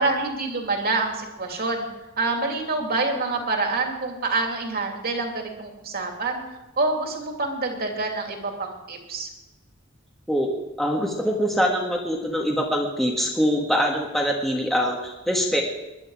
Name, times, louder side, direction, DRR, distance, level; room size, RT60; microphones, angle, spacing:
voice 1, 0.0-1.9 2.2-6.4 6.8-9.3, right 3 dB, 50° right, 2 dB, 2.8 m, -26 dB
voice 2, 10.8-15.6, equal, ahead, -1 dB, 1.7 m, -23 dB
21.0 x 11.0 x 4.9 m, 1.0 s
head